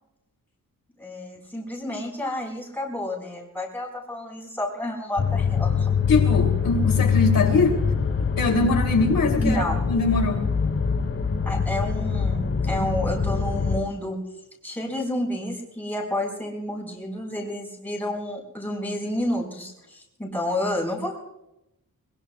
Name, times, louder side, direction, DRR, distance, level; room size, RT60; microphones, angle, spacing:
voice 1, 1.0-5.9 9.4-9.8 11.4-14.2 14.6-21.2, left 1 dB, 5° left, -2 dB, 5.1 m, -30 dB
sound 1, 5.2-13.8, left 6 dB, 40° left, 1.4 m, -24 dB
voice 2, 6.1-7.8 8.4-10.5, left 3 dB, 70° left, 1 dB, 3.3 m, -22 dB
22.0 x 21.5 x 2.4 m, 0.86 s
wide cardioid pair, 170°, 36 cm